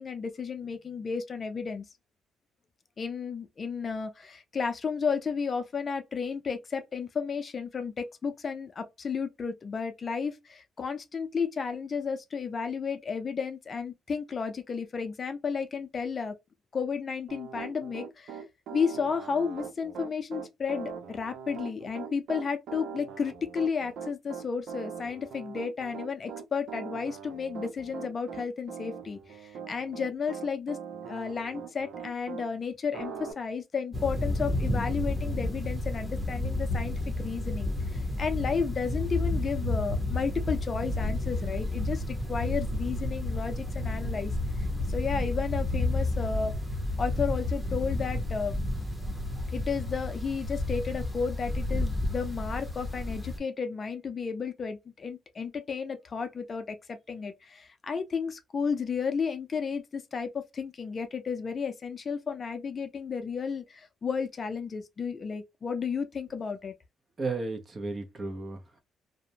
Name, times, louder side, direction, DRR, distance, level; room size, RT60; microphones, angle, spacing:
voice 1, 0.0-1.9 3.0-16.4 16.7-18.4 18.7-30.8 31.1-44.3 44.9-46.5 47.0-48.6 49.5-66.7, left 5 dB, 40° left, 0.4 m, -33 dB
Piano, 17.3-32.5 32.9-33.3, right 6 dB, 75° right, 0.7 m, -41 dB
sound 1, 33.9-53.4, left 1 dB, 5° left, 0.9 m, -31 dB
voice 2, 67.2-68.8, right 3 dB, 35° right, 0.8 m, -34 dB
2.5 x 2.1 x 2.7 m
cardioid pair, 90°, 0 cm